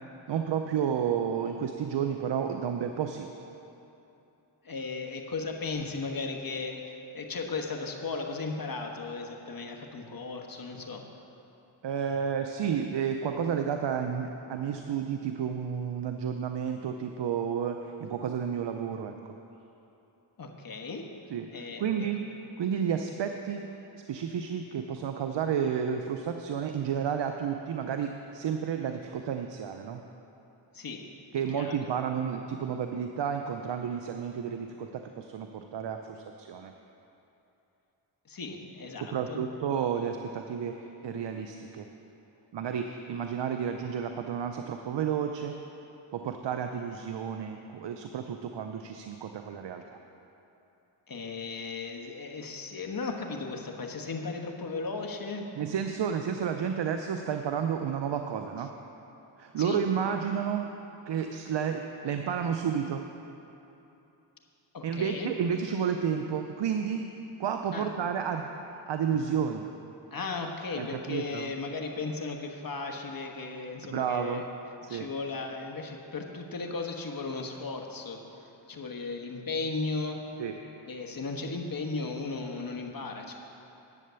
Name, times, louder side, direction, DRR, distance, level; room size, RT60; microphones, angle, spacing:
voice 1, 0.3-3.3 11.8-19.3 21.3-23.7 24.1-30.0 31.3-36.7 38.9-41.9 42.5-45.6 46.1-50.0 55.6-58.7 59.4-60.7 61.1-63.1 64.8-67.1 67.4-69.7 70.7-71.5 73.9-74.4 74.8-75.1 80.4-80.6, right 7 dB, 60° right, 5 dB, 0.7 m, -31 dB
voice 2, 4.6-6.8 7.1-11.0 20.4-21.0 21.5-21.8 30.7-31.0 31.5-31.7 38.3-39.4 51.1-55.4 59.6-59.8 64.7-65.3 67.7-67.9 70.1-74.4 74.9-78.2 78.7-80.2 80.9-83.3, left 4 dB, 45° left, 2 dB, 1.4 m, -36 dB
11.0 x 7.6 x 6.9 m, 2.9 s
cardioid pair, 70°, 48 cm